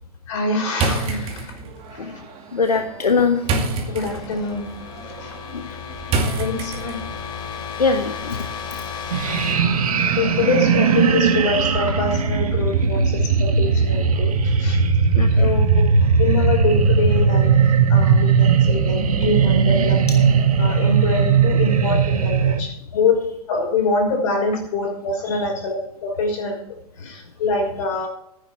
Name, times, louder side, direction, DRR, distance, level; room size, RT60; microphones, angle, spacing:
voice 1, 0.3-1.6 1.9-2.1 3.9-4.8 5.0-5.3 6.4-7.0 9.3-9.5 10.2-14.8 15.3-15.8 16.2-17.6 17.9-20.3 20.6-26.6 27.0-28.1, left 3 dB, 55° left, 2 dB, 5.8 m, -25 dB
sound 1, 0.7-7.2, right 3 dB, 30° right, 2.3 m, -28 dB
voice 2, 2.5-3.4 5.5-5.8 7.8-8.5 14.7-14.8 15.1-15.5 25.3-25.4, left 4 dB, 80° left, 7 dB, 1.1 m, -22 dB
sound 2, 2.7-12.4, left 6 dB, 25° left, 2.7 m, -35 dB
sound 3, 9.1-22.6, right 5 dB, 65° right, 1.5 m, -18 dB
14.5 x 9.9 x 4.4 m, 0.72 s
figure-of-eight pair, 105°, 20 cm